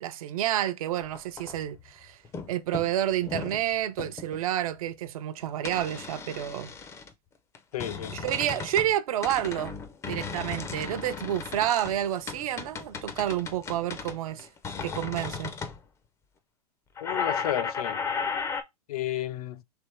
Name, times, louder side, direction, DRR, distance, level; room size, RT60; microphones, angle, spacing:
voice 1, 0.0-2.2 2.5-6.7 8.1-9.8 10.1-14.5 14.8-15.5, right 12 dB, 60° right, 0.6 m, -29 dB
sound 1, 1.0-1.9 2.3-2.5 2.7-3.6 4.0-4.4 5.7-7.1 7.5-8.9 9.2-15.8 17.0-18.6, left 5 dB, 15° left, 0.5 m, -35 dB
voice 2, 7.7-8.2 17.0-18.0 18.9-19.6, left 12 dB, 65° left, 0.5 m, -32 dB
3.4 x 3.0 x 4.3 m
hypercardioid pair, 125°, 21 cm